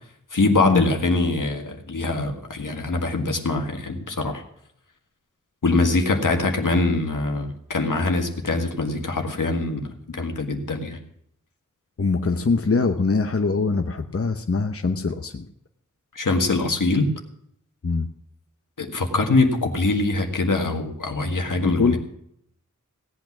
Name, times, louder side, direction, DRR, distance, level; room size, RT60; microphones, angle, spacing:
voice 1, 0.3-4.4 5.6-11.0 16.2-17.1 18.8-22.0, left 3 dB, 80° left, 3 dB, 1.8 m, -23 dB
voice 2, 12.0-15.4 17.8-18.1 21.6-22.0, left 4 dB, 45° left, 6 dB, 0.9 m, -23 dB
17.0 x 8.6 x 6.1 m, 0.72 s
wide cardioid pair, 50°, 31 cm